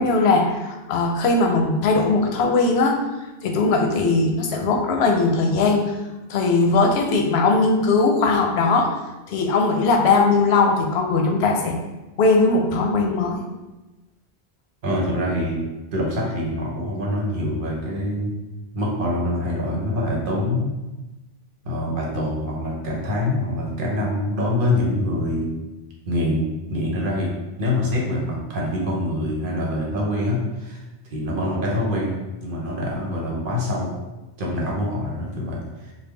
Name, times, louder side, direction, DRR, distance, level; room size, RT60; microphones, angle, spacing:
voice 1, 0.0-2.9 3.4-5.9 6.3-8.9 9.3-11.8 12.2-13.4, left 3 dB, 85° left, 2 dB, 0.8 m, -19 dB
voice 2, 14.8-15.6 15.9-18.4 18.7-20.8 21.6-25.5 26.1-27.3 27.6-34.0 34.4-35.9, left 1 dB, 60° right, -2 dB, 0.9 m, -25 dB
3.4 x 2.2 x 3.2 m, 1.1 s
omnidirectional pair, 1.0 m